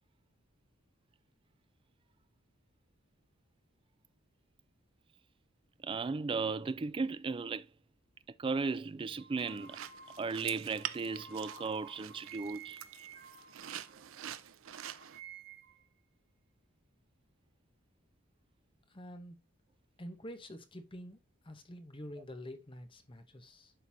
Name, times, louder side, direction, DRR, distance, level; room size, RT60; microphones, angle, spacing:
voice 1, 5.8-7.7 8.4-9.8 10.2-12.8, right 4 dB, 25° right, 0.3 m, -35 dB
sound 1, 9.2-14.5 14.8-15.9, right 5 dB, 50° right, 2.0 m, -53 dB
sound 2, 9.4-15.2, right 11 dB, 70° right, 0.5 m, -46 dB
voice 2, 18.9-19.4 20.0-21.2 21.4-23.7, equal, 25° left, 0.9 m, -47 dB
11.5 x 4.0 x 2.8 m
head